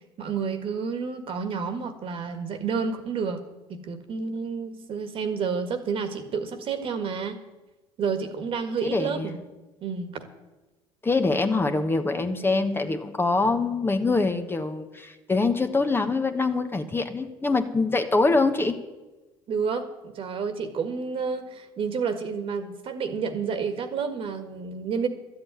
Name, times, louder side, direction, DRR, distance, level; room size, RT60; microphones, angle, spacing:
voice 1, 0.2-3.4 3.7-7.4 8.0-9.4 9.8-10.2 19.5-25.1, right 5 dB, 55° right, 8 dB, 1.7 m, -30 dB
voice 2, 8.8-9.3 11.0-18.8, left 3 dB, 20° left, 7 dB, 1.2 m, -24 dB
12.0 x 7.8 x 9.2 m, 1.1 s
supercardioid pair, 85°, 11 cm